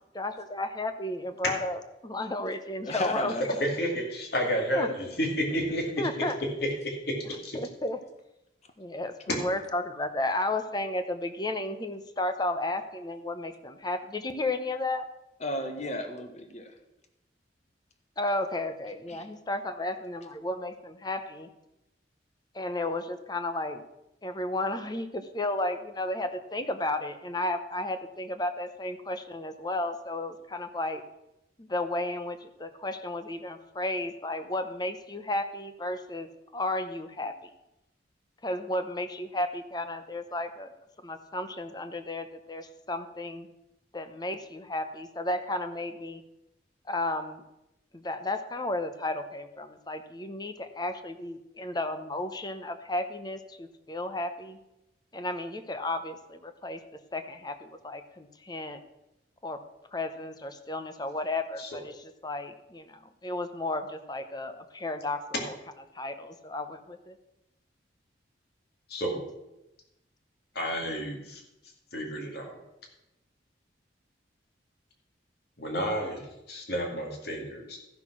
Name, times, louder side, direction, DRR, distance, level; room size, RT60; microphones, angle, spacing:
voice 1, 0.1-3.6 4.7-4.9 6.0-6.4 7.2-8.0 8.8-15.1 18.2-21.5 22.5-23.8 24.2-31.0 31.6-37.5 38.4-40.7 41.0-43.5 43.9-46.2 46.9-47.4 47.9-54.6 55.1-56.8 57.1-58.8 59.4-59.6 59.9-67.2, left 2 dB, 20° left, 9 dB, 0.8 m, -33 dB
voice 2, 2.8-3.6 15.4-16.7 19.1-19.3, left 1 dB, 40° left, 6 dB, 1.2 m, -33 dB
voice 3, 3.8-4.9 5.5-5.8 6.8-7.0 7.4-7.6 9.3-9.4 61.6-61.7 68.9-69.3 70.5-71.4 71.9-72.6 75.6-77.8, equal, 60° left, 1 dB, 2.3 m, -31 dB
14.0 x 6.0 x 6.1 m, 0.92 s
head